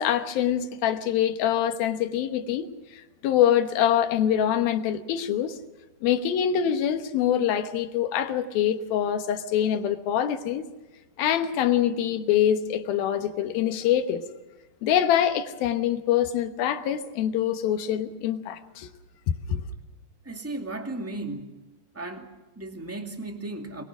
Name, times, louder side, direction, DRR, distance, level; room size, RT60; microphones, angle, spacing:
voice 1, 0.0-5.6 6.0-10.6 11.2-14.2 14.8-18.9 19.3-19.6, left 10 dB, 80° left, 3.0 m, -25 dB
voice 2, 20.2-21.5 21.9-23.8, right 2 dB, 5° right, 1.3 m, -35 dB
24.0 x 21.5 x 6.3 m
omnidirectional pair, 4.2 m